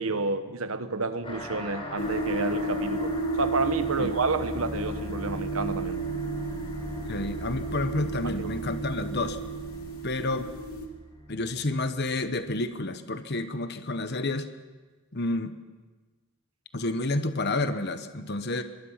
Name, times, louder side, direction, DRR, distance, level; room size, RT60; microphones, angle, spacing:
voice 1, 0.0-3.1 3.4-6.0 8.2-8.5, right 3 dB, 70° right, 10 dB, 1.3 m, -30 dB
Digital Sound One Shot, 1.2-12.2, equal, 25° left, 4.3 m, -39 dB
sound 1, 2.0-10.9, right 2 dB, 75° left, 2.7 m, -33 dB
voice 2, 7.1-9.4 10.0-10.5 11.3-14.5 15.1-15.5 16.7-18.6, left 2 dB, 50° left, 10 dB, 1.1 m, -30 dB
24.0 x 22.0 x 5.8 m, 1.3 s
head